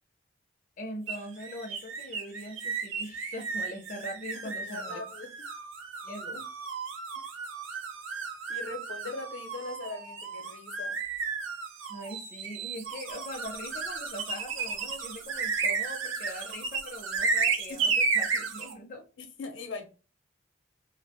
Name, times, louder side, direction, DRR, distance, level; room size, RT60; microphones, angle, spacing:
voice 1, 0.8-5.0 6.0-6.4 11.9-19.0, left 1 dB, 40° left, 0.5 m, -41 dB
sound 1, 1.1-18.7, right 5 dB, 85° right, 0.6 m, -33 dB
voice 2, 4.6-5.3 8.5-11.0 17.9-18.0 19.2-19.9, left 3 dB, 80° left, 0.7 m, -40 dB
2.5 x 2.0 x 2.8 m
head